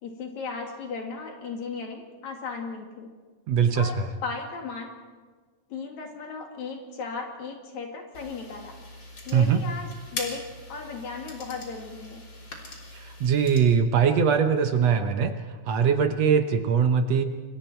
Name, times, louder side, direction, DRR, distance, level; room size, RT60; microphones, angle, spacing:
voice 1, 0.0-3.2 3.7-4.9 5.7-8.8 9.3-12.3, left 4 dB, 70° left, 2 dB, 3.9 m, -36 dB
voice 2, 3.5-4.1 9.3-9.6 12.9-15.3 15.7-17.2, right 6 dB, 65° right, 7 dB, 2.1 m, -22 dB
sound 1, 8.1-13.6, left 2 dB, 35° left, 4.1 m, -41 dB
29.5 x 23.0 x 4.6 m, 1.4 s
omnidirectional pair, 3.5 m